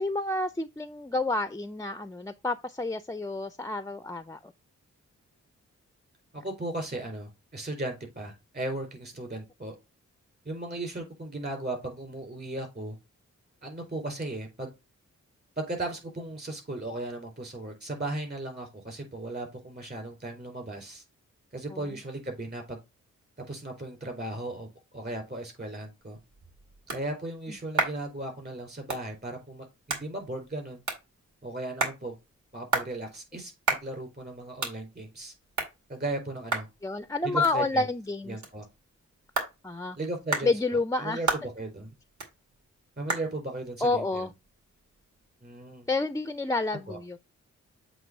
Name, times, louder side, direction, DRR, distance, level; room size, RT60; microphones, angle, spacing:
voice 1, 0.0-4.5 21.7-21.8 36.8-38.4 39.6-40.0 40.4-41.2 43.8-44.3 45.9-47.2, left 2 dB, 10° left, 0.4 m, -29 dB
voice 2, 6.4-9.7 10.4-13.0 13.6-14.7 15.6-21.0 21.5-22.8 23.5-24.7 24.9-26.2 26.9-30.8 31.4-32.1 32.5-35.3 35.9-36.7 37.2-37.9 38.3-38.6 40.0-41.9 43.0-44.3 45.4-45.9 46.9-47.0, right 2 dB, 35° right, 4.1 m, -36 dB
sound 1, 26.0-45.3, right 3 dB, 70° right, 2.3 m, -37 dB
7.7 x 3.1 x 5.3 m
cardioid pair, 80°, 30 cm